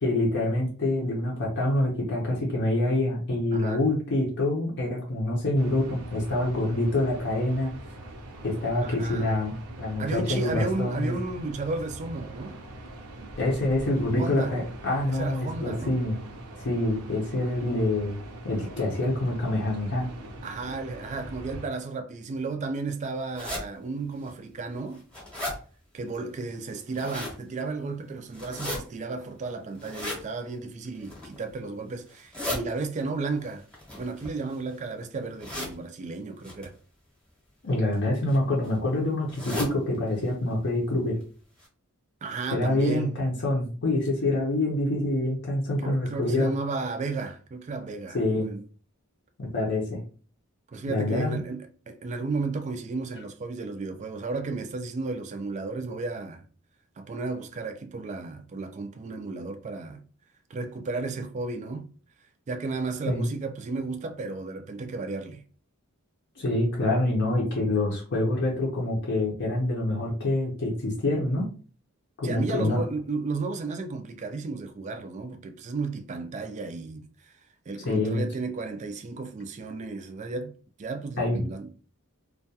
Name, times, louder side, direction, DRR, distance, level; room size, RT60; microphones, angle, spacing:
voice 1, 0.0-7.7 8.4-11.1 13.4-16.2 16.6-18.2 18.4-20.1 37.6-41.2 42.5-46.5 48.1-48.5 49.4-50.0 50.9-51.4 63.1-63.3 66.4-71.5 72.2-72.8 77.8-78.2 81.2-81.4, left 1 dB, 50° left, 0.6 m, -26 dB
sound 1, 5.6-21.7, right 1 dB, 85° right, 0.6 m, -42 dB
voice 2, 8.8-9.3 10.0-12.6 14.2-14.5 15.1-16.0 20.4-25.0 25.9-33.6 34.0-36.7 42.2-43.2 45.8-48.6 50.7-56.4 57.0-60.0 60.5-61.9 62.5-65.4 72.2-77.3 77.7-80.5 80.8-81.7, right 3 dB, 30° right, 0.3 m, -33 dB
sound 2, 23.3-23.6 24.3-24.4 24.8-25.6 26.7-27.4 28.3-28.8 29.8-30.2 31.0-31.4 32.1-32.6 33.7-34.7 35.4-35.7 36.4-36.7 37.7-37.9 38.3-38.4 38.6-38.7 39.3-39.7 40.1-40.3 40.5-40.6 41.2-41.3 41.6-41.7, left 1 dB, 5° left, 0.9 m, -35 dB
2.2 x 2.2 x 2.7 m
head